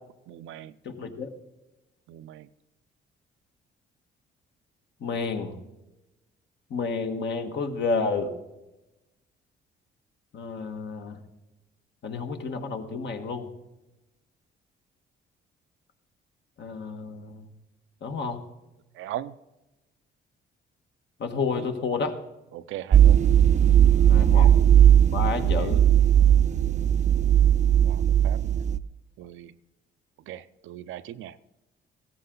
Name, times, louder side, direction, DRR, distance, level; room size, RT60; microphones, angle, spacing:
voice 1, 0.3-0.7 2.1-2.5 18.9-19.3 21.5-21.7 22.5-23.2 24.1-24.5 25.4-25.7 27.0-28.6 29.2-29.5 30.3-31.5, right 12 dB, 80° right, 14 dB, 0.6 m, -40 dB
voice 2, 0.8-1.3 5.0-5.6 6.7-8.3 10.3-11.2 12.0-13.5 16.6-17.5 18.0-18.4 21.2-22.1 24.1-24.5 25.1-25.8, left 4 dB, 65° left, 5 dB, 1.6 m, -30 dB
sound 1, 22.9-28.8, right 10 dB, 35° right, 0.5 m, -18 dB
16.0 x 13.5 x 3.9 m, 0.99 s
cardioid pair, 90°, 20 cm